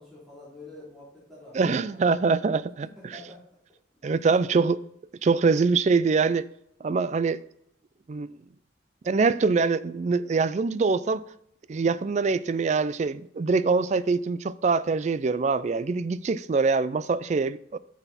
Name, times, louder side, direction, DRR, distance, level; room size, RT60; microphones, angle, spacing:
voice 1, 0.0-2.2 2.8-3.5 4.0-4.5, left 2 dB, ahead, 3.6 m, -48 dB
voice 2, 1.5-2.9 4.0-4.8 5.2-6.4 6.8-7.4 8.1-8.3 9.0-11.2 11.7-17.8, right 4 dB, 35° right, 0.3 m, -24 dB
8.9 x 6.2 x 4.1 m
head